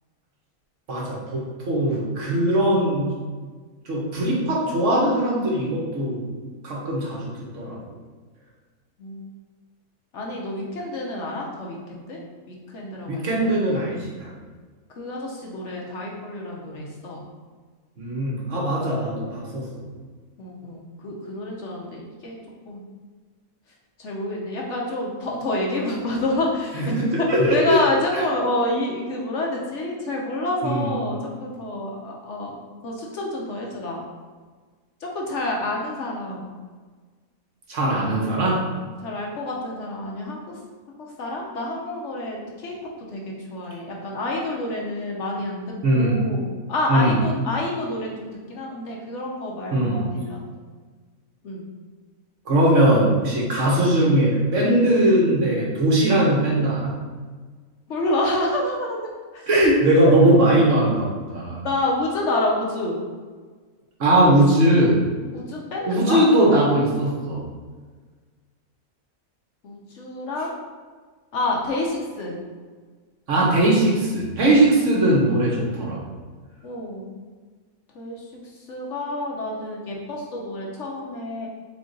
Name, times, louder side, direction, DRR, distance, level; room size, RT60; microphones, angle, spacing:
voice 1, 0.9-3.2 3.8-6.3 6.6-7.8 13.1-14.3 18.0-19.6 26.7-27.8 30.6-30.9 37.7-38.6 45.8-46.2 46.9-47.1 49.7-50.0 52.5-56.9 59.5-61.6 64.0-64.9 65.9-67.4 73.3-76.0, right 1 dB, 60° right, -4 dB, 1.4 m, -20 dB
voice 2, 10.1-12.2 12.5-13.5 14.9-17.2 20.4-22.4 22.7-22.8 24.0-34.0 35.0-36.5 39.0-40.6 41.0-42.7 43.1-50.5 51.4-51.6 57.9-59.0 59.3-59.6 61.6-63.0 65.3-66.2 69.6-70.5 71.3-72.4 76.6-77.1 77.9-81.5, left 2 dB, 60° left, -2 dB, 1.0 m, -28 dB
3.6 x 3.6 x 3.9 m, 1.5 s
omnidirectional pair, 1.5 m